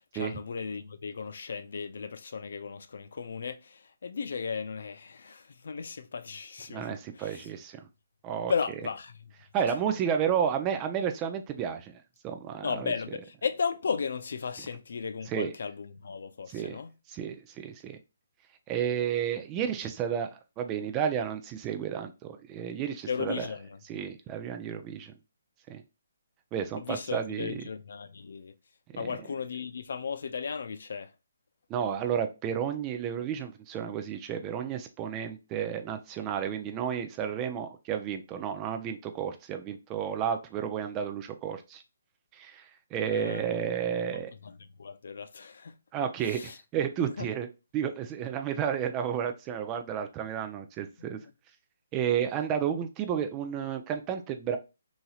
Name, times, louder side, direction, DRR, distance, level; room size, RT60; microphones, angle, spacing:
voice 1, 0.1-7.4 8.5-9.1 12.6-16.9 23.1-23.8 26.8-28.5 29.0-31.1 43.1-43.6 44.4-44.5 44.8-45.7 46.3-46.5 47.2-47.3, left 6 dB, 65° left, 0.4 m, -35 dB
voice 2, 6.7-7.9 8.2-8.5 9.5-12.9 15.3-15.5 16.5-16.8 17.1-18.0 18.7-23.5 23.9-25.1 25.7-25.8 26.5-27.7 28.9-29.3 31.7-41.8 42.3-44.3 45.9-47.5 47.7-51.2 51.9-54.6, right 8 dB, 20° right, 0.4 m, -32 dB
2.9 x 2.7 x 2.3 m
hypercardioid pair, 150°, 0 cm